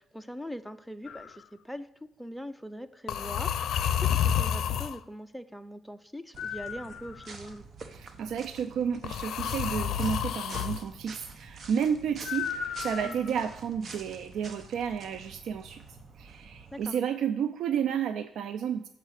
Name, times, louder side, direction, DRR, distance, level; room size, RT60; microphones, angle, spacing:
voice 1, 0.0-1.9 2.2-7.6 13.0-13.4 16.7-17.0, equal, ahead, 8 dB, 0.5 m, -42 dB
sound 1, 1.1-1.4 3.1-5.0 6.4-7.5 9.0-10.8 12.2-13.4, left 9 dB, 70° left, 0.5 m, -30 dB
sound 2, 6.3-16.9, right 4 dB, 50° right, 0.9 m, -48 dB
voice 2, 7.9-15.8 16.2-18.9, right 8 dB, 75° right, 10 dB, 0.4 m, -31 dB
7.2 x 5.0 x 6.4 m, 0.77 s
cardioid pair, 90°, 0 cm